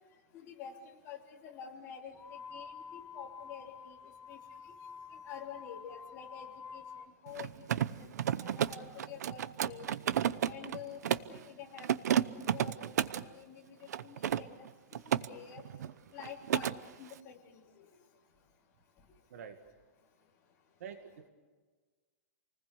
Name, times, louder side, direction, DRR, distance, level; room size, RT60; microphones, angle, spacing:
voice 1, 0.3-0.7 1.0-4.0 4.3-4.4 5.3-6.8 7.2-8.1 8.4-9.9 10.5-12.9 13.2-14.5 14.9-15.0 15.3-15.6 16.1-16.7 17.0-17.6, left 8 dB, 25° left, -2 dB, 3.6 m, -48 dB
sound 1, 2.1-7.1, left 6 dB, 10° left, 0.7 m, -49 dB
Mechanisms, 7.3-11.4 11.8-13.3 13.9-15.3 15.6-15.9 16.2-16.8, right 10 dB, 80° right, 0.8 m, -32 dB
voice 2, 20.8-21.3, right 7 dB, 60° right, 6 dB, 2.1 m, -46 dB
29.0 x 20.0 x 6.9 m, 1.4 s
supercardioid pair, 175°, 9 cm